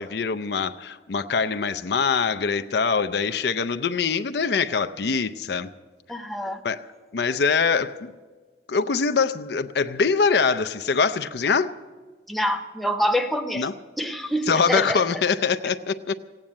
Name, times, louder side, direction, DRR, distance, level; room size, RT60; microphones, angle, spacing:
voice 1, 0.0-5.7 6.6-6.8 7.1-8.1 8.7-11.7 13.5-13.7 14.5-16.2, left 5 dB, 70° left, 10 dB, 0.5 m, -23 dB
voice 2, 6.1-6.6 12.3-13.7 14.0-15.2, equal, ahead, 4 dB, 0.8 m, -26 dB
16.0 x 8.9 x 8.7 m, 1.4 s
head